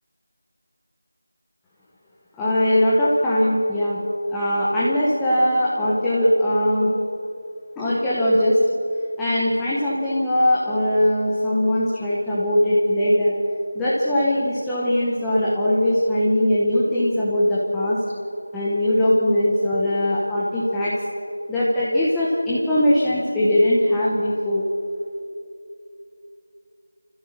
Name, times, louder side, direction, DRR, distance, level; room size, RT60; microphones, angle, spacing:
voice 1, 2.4-4.0 4.3-6.9 7.8-8.6 9.2-13.3 13.7-18.0 18.5-21.0 21.5-24.7, left 1 dB, 5° left, -9 dB, 1.0 m, -20 dB
28.5 x 14.5 x 8.7 m, 2.7 s
figure-of-eight pair, 180°, 0 cm